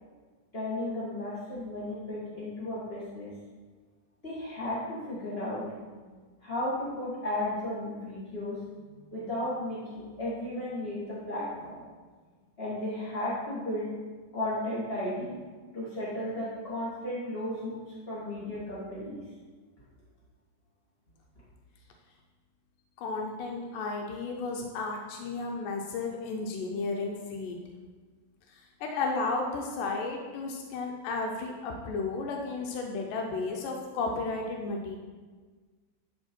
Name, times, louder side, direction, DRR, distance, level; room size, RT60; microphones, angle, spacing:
voice 1, 0.5-3.3 4.2-8.6 9.1-11.8 12.6-13.9 14.3-15.3 15.7-19.2, left 1 dB, 40° left, -9 dB, 0.9 m, -34 dB
voice 2, 23.0-27.6 28.5-35.0, left 3 dB, 85° left, 1 dB, 2.4 m, -33 dB
12.0 x 4.5 x 4.4 m, 1.4 s
omnidirectional pair, 3.8 m